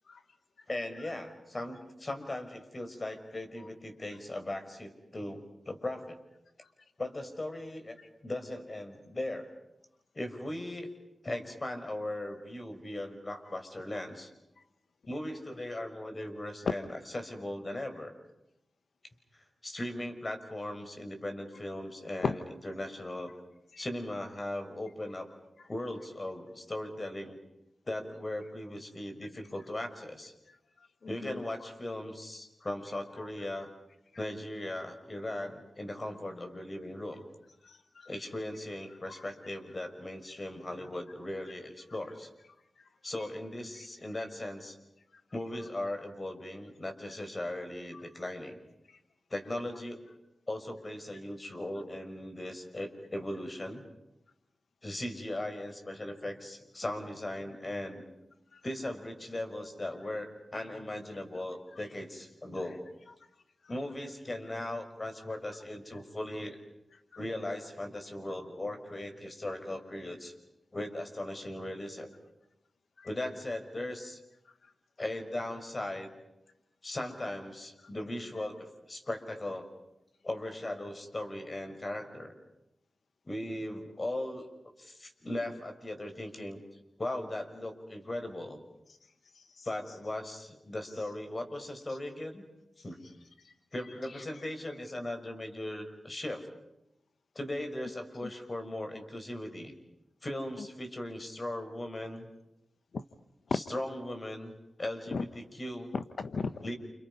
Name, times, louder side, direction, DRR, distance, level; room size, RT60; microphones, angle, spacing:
voice 1, 0.7-6.2 7.0-8.0 8.2-9.5 10.1-10.9 11.2-14.3 15.1-18.1 19.3-23.3 23.8-25.3 25.7-27.4 27.9-30.3 31.1-33.7 34.2-37.2 38.1-42.3 43.0-44.8 45.3-48.6 49.3-50.0 50.5-53.8 54.8-58.0 58.6-62.9 63.7-66.6 67.2-70.3 70.7-72.1 73.0-74.2 75.0-76.1 76.8-79.7 80.2-82.3 83.2-84.5 84.8-86.6 87.0-88.6 89.7-92.4 92.8-93.0 93.7-96.5 97.3-99.7 100.2-102.3 103.5-105.9 106.6-106.7, left 1 dB, 40° left, 6 dB, 5.9 m, -38 dB
voice 2, 31.0-31.4 33.2-33.3 34.1-34.2 37.6-38.1 39.1-39.2 42.8-42.9 47.9-48.0 48.9-49.0 58.5-58.6 66.9-67.0 73.0-73.1 74.6-74.7 89.3-89.7 91.9-92.0 93.4-93.5 94.1-94.2 102.9-103.0 103.5-103.6 105.1-105.2 105.9-106.7, left 4 dB, 75° left, 10 dB, 0.9 m, -37 dB
29.5 x 29.0 x 5.6 m, 0.89 s
cardioid pair, 40°, 0 cm